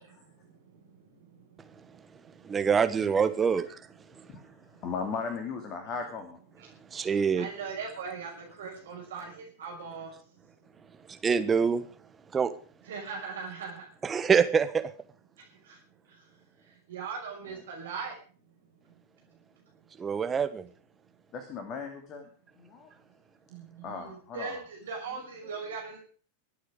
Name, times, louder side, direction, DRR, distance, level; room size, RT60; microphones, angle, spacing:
voice 1, 0.0-2.6 4.1-4.8 6.6-7.1 7.3-10.2 12.8-13.9 15.4-15.8 16.1-16.3 16.9-18.2 18.8-18.9 23.5-26.0, right 5 dB, 60° right, 0 dB, 5.7 m, -41 dB
voice 2, 2.4-3.8 6.9-7.5 11.2-11.8 12.3-12.5 14.0-14.9 20.0-20.7, right 6 dB, 20° right, 11 dB, 1.4 m, -25 dB
voice 3, 4.8-6.4 21.3-22.3 22.6-22.9 23.8-24.6, left 5 dB, 35° left, 5 dB, 2.7 m, -37 dB
23.5 x 8.7 x 5.1 m, 0.41 s
figure-of-eight pair, 90°, 0 cm